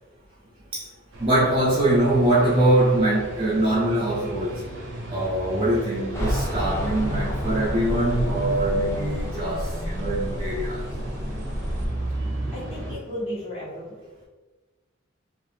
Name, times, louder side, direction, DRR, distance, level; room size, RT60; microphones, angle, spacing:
sound 1, 1.1-13.0, right 1 dB, 65° right, 0.8 m, -34 dB
voice 1, 1.2-4.6 5.1-10.8, right 1 dB, 25° right, -8 dB, 0.6 m, -23 dB
sound 2, 6.1-11.9, equal, 15° left, 0.6 m, -30 dB
voice 2, 12.5-13.9, equal, 30° left, -9 dB, 1.3 m, -34 dB
2.7 x 2.5 x 3.2 m, 1.2 s
head